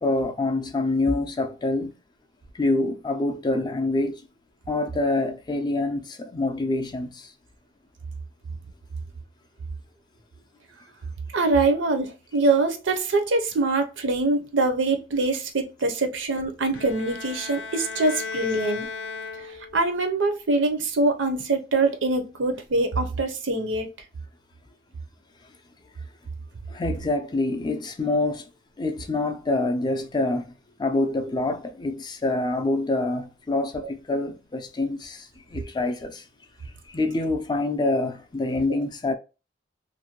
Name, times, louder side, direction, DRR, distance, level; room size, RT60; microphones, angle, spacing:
voice 1, 0.0-1.9 2.5-4.3 4.7-7.3 26.7-28.5 28.8-30.5 30.8-36.2 36.9-39.1, left 2 dB, 25° left, 0.3 m, -26 dB
voice 2, 11.3-18.9 19.4-23.9, right 3 dB, 85° right, 0.6 m, -24 dB
Bowed string instrument, 16.7-19.9, left 4 dB, 90° left, 0.5 m, -35 dB
2.6 x 2.1 x 2.9 m
head